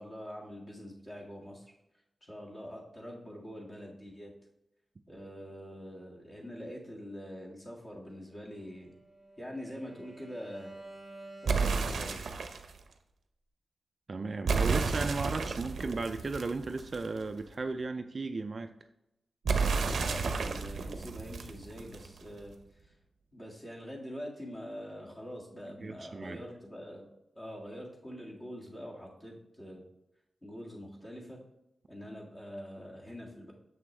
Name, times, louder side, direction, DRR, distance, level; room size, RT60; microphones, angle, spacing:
voice 1, 0.0-1.7 2.2-4.3 5.1-8.9 9.4-10.7 11.4-12.4 19.4-22.5 22.8-22.9 23.3-27.0 27.4-29.8 30.4-31.4 31.9-33.5, equal, 25° left, -3 dB, 1.9 m, -44 dB
Bowed string instrument, 8.3-12.5, right 1 dB, 5° left, 2.2 m, -51 dB
sound 1, 11.5-12.7 14.5-17.2 19.5-22.2, right 4 dB, 90° right, 0.7 m, -31 dB
voice 2, 14.1-18.7 25.8-26.4, right 3 dB, 40° right, 7 dB, 0.4 m, -35 dB
7.0 x 6.1 x 3.2 m, 0.87 s
wide cardioid pair, 125°, 0 cm